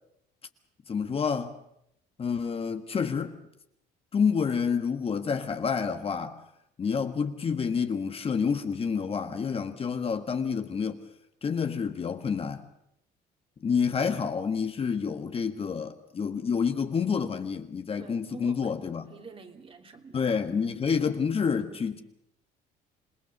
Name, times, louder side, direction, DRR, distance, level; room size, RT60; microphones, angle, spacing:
voice 1, 0.9-1.5 2.2-3.4 4.1-6.4 6.8-11.0 11.4-12.6 13.6-19.1 20.1-22.0, left 6 dB, 35° left, 1.5 m, -28 dB
voice 2, 18.0-20.3, right 4 dB, 35° right, 2.7 m, -48 dB
27.5 x 19.0 x 6.8 m
cardioid pair, 110°, 17 cm